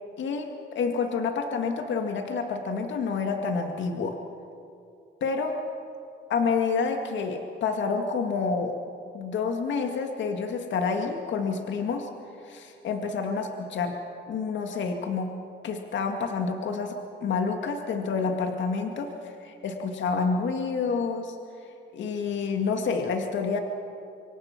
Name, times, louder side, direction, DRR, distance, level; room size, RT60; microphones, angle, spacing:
voice 1, 0.2-4.2 5.2-5.6 6.3-8.8 9.1-12.1 12.4-13.9 14.3-15.3 15.6-21.4 21.9-23.6, left 5 dB, 70° left, 4 dB, 2.1 m, -28 dB
26.5 x 24.5 x 6.0 m, 2.5 s
cardioid pair, 90°, 20 cm